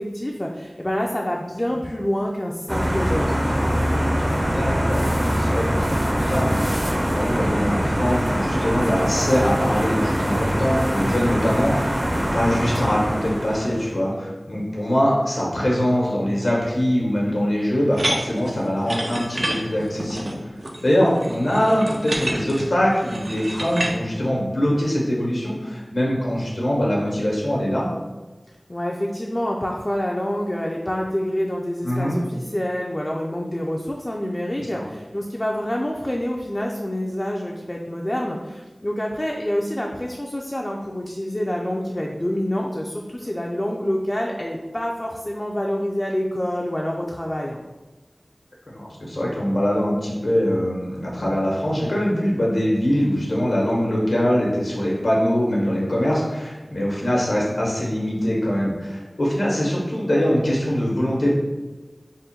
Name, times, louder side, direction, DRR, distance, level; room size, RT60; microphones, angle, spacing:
voice 1, 0.0-3.8 28.7-47.6, equal, 30° left, -1 dB, 0.4 m, -27 dB
sound 1, 2.7-13.9, equal, 35° right, 0.6 m, -23 dB
voice 2, 4.5-20.5 20.8-27.9 31.8-32.2 34.7-34.8 48.7-61.4, equal, 85° left, -4 dB, 1.0 m, -23 dB
sound 2, 17.9-23.9, right 1 dB, 80° right, 0.5 m, -29 dB
3.7 x 2.1 x 4.2 m, 1.2 s
wide cardioid pair, 55°, 0 cm